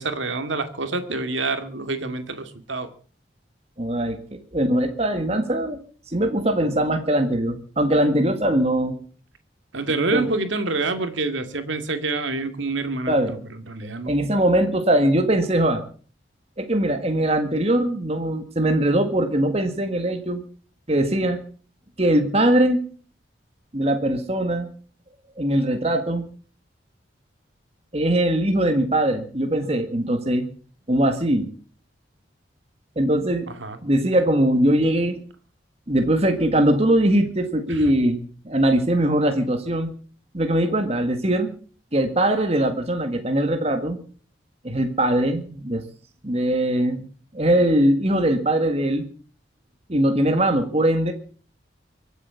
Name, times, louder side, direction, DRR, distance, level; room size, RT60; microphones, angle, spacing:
voice 1, 0.0-2.9 9.7-14.1 33.6-33.8 37.7-37.9, right 3 dB, 85° right, 9 dB, 2.4 m, -27 dB
voice 2, 3.8-4.2 4.5-5.8 6.1-9.0 10.1-10.3 13.1-13.3 14.1-15.8 16.6-20.4 20.9-21.4 22.0-22.8 23.7-24.7 25.4-26.2 27.9-30.4 30.9-31.5 33.0-33.5 33.8-35.2 35.9-39.9 40.3-41.5 41.9-44.0 44.6-45.8 46.2-47.1 47.3-49.1 49.9-51.1, right 1 dB, 35° right, 6 dB, 1.8 m, -21 dB
24.5 x 8.2 x 7.0 m, 0.43 s
head